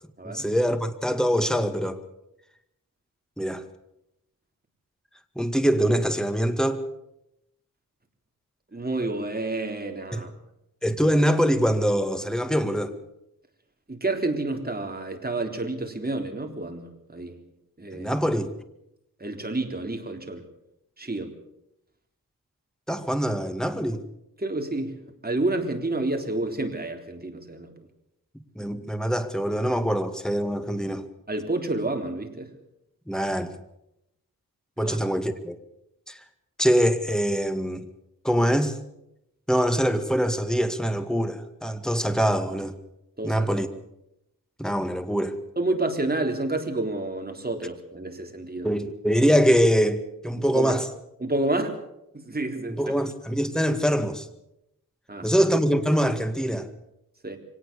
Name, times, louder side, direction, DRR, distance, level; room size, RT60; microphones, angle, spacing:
voice 1, 0.2-2.0 3.4-3.6 5.4-6.8 10.1-10.2 10.8-12.9 17.9-18.5 22.9-24.0 28.3-31.1 33.1-33.5 34.8-35.6 36.1-36.2 36.6-37.9 38.2-38.8 39.5-42.7 43.2-43.7 44.6-45.3 48.6-50.8 52.7-54.3 55.2-56.7, equal, ahead, 2.1 m, -24 dB
voice 2, 8.7-10.3 13.9-17.4 17.8-18.1 19.2-20.5 21.0-21.3 24.4-24.9 25.2-27.7 31.3-32.5 34.8-35.0 43.2-43.7 45.6-48.7 50.4-50.8 51.2-51.8 52.1-53.0 55.1-55.4 57.2-57.4, right 2 dB, 25° right, 3.7 m, -29 dB
24.0 x 18.5 x 7.0 m
wide cardioid pair, 75°, 35 cm